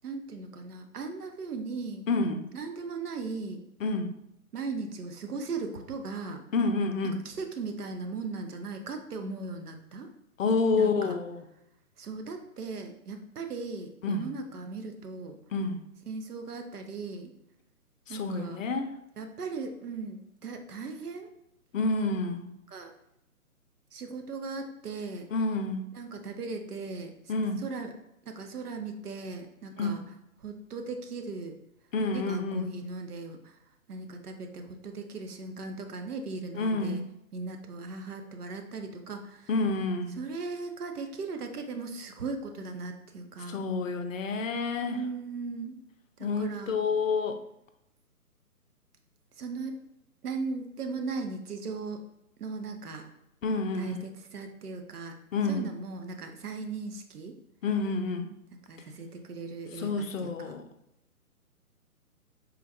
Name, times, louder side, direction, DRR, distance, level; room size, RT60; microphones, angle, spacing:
voice 1, 0.0-2.0 2.5-3.6 4.5-6.4 7.2-10.1 10.7-11.2 12.0-15.4 16.1-17.3 18.1-18.6 19.2-21.3 22.7-22.9 23.9-25.2 25.9-27.3 27.6-27.9 28.3-30.0 30.4-31.5 32.1-33.5 33.9-37.0 37.3-39.5 40.2-43.6 44.8-45.8 46.2-46.8 49.4-49.8 50.2-52.0 52.4-53.0 53.7-55.2 55.5-57.4 58.7-60.5, right 4 dB, 80° right, 5 dB, 0.6 m, -38 dB
voice 2, 2.1-2.5 3.8-4.1 6.5-7.2 10.4-11.4 14.0-14.3 15.5-15.8 18.1-18.9 21.7-22.5 25.3-25.9 27.3-27.6 29.8-29.9 31.9-32.6 36.5-37.0 39.5-40.1 43.5-45.0 46.2-47.4 53.4-54.0 55.3-55.7 57.6-58.3 59.7-60.7, left 3 dB, 60° left, 8 dB, 0.5 m, -28 dB
3.7 x 2.1 x 2.8 m, 0.81 s
figure-of-eight pair, 140°, 45 cm